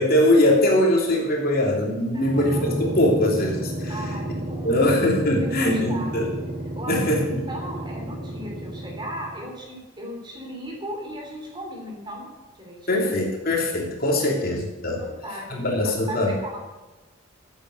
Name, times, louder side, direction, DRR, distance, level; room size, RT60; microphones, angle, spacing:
voice 1, 0.0-3.9 4.6-6.3 6.9-7.5 12.9-15.0 15.6-16.3, left 1 dB, 45° left, -1 dB, 3.0 m, -21 dB
voice 2, 2.1-2.7 3.9-5.0 5.4-6.3 6.8-12.3 12.6-13.1 14.2-14.3 15.0-16.6, right 1 dB, 25° right, 0 dB, 3.7 m, -37 dB
sound 1, 2.1-9.5, right 1 dB, 45° right, 3.7 m, -32 dB
14.5 x 9.3 x 6.5 m, 1.1 s
head